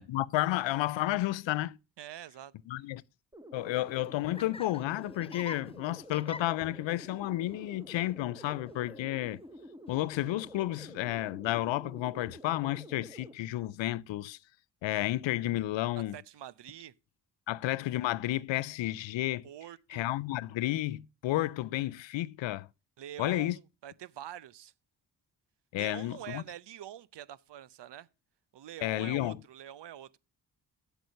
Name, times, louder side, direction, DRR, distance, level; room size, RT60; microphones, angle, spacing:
voice 1, 0.0-1.8 2.7-3.0 3.5-9.4 9.9-14.4 14.8-16.1 17.5-19.5 19.9-22.7 23.2-23.6 25.7-26.4 28.8-29.4, left 15 dB, 75° left, 0.5 m, -32 dB
voice 2, 2.0-2.5 16.0-16.9 19.4-20.1 23.0-24.7 25.8-28.1 28.5-30.2, right 11 dB, 65° right, 0.7 m, -45 dB
sound 1, 3.3-13.3, equal, 10° right, 1.4 m, -49 dB
Laughter, 3.9-11.3, left 4 dB, 15° left, 0.4 m, -50 dB
8.3 x 7.9 x 6.4 m
supercardioid pair, 45°, 45 cm